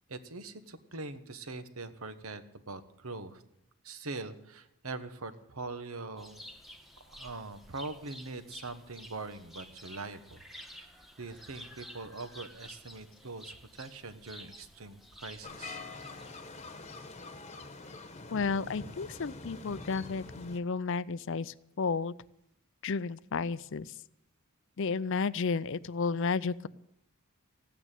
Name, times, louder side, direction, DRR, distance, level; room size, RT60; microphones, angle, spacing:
voice 1, 0.1-3.4 3.8-6.4 7.0-10.9 11.2-15.8, right 3 dB, 75° right, 10 dB, 1.4 m, -43 dB
sound 1, 6.2-16.6, equal, ahead, 1.3 m, -51 dB
sound 2, 15.4-20.6, left 3 dB, 30° left, 1.2 m, -45 dB
voice 2, 18.3-22.1 22.8-23.9 24.8-26.7, left 4 dB, 60° left, 18 dB, 0.5 m, -32 dB
15.5 x 9.3 x 9.1 m, 0.80 s
head